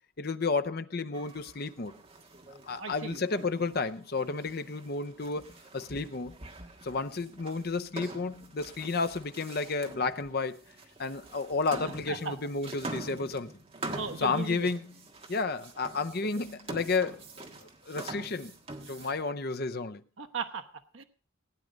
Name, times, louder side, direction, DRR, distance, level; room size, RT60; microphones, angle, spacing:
voice 1, 0.2-1.9 2.7-5.5 5.7-6.4 6.8-10.6 11.0-13.5 14.2-14.8 15.3-17.2 17.6-18.5 18.9-20.0, left 4 dB, 50° left, 0.7 m, -32 dB
sound 1, 1.1-19.3, right 2 dB, 30° right, 1.5 m, -45 dB
voice 2, 2.8-3.7 11.7-11.8 12.1-12.4 13.9-14.7 20.2-20.7 20.9-21.0, right 5 dB, 70° right, 1.0 m, -37 dB
16.5 x 9.3 x 5.2 m
head